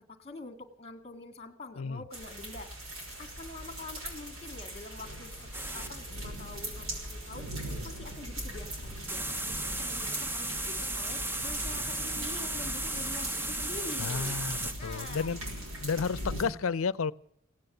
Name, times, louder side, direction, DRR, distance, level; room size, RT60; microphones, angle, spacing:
voice 1, 0.2-2.7 3.2-5.5 5.7-7.5 7.8-14.4 14.8-15.3, left 3 dB, 30° left, 1.9 m, -46 dB
sound 1, 2.1-16.4, right 1 dB, 80° right, 5.6 m, -40 dB
sound 2, 5.5-5.9 9.1-14.7, right 2 dB, 10° right, 0.7 m, -34 dB
voice 2, 14.0-15.4 15.8-17.1, left 5 dB, 75° left, 0.6 m, -32 dB
17.5 x 9.7 x 7.8 m
head